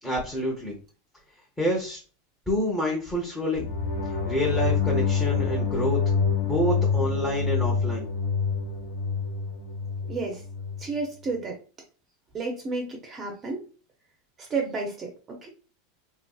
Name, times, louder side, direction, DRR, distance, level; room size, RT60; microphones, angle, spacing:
voice 1, 0.0-0.8 1.6-2.0 2.5-3.7 4.3-6.0 6.4-8.1, equal, 5° left, -3 dB, 0.7 m, -27 dB
sound 1, 3.6-10.8, left 5 dB, 75° left, 1.4 m, -26 dB
voice 2, 10.1-10.4 10.8-11.6 12.3-13.6 14.4-15.5, right 3 dB, 25° right, 2 dB, 0.6 m, -31 dB
2.8 x 2.6 x 2.3 m, 0.36 s
supercardioid pair, 140°, 0 cm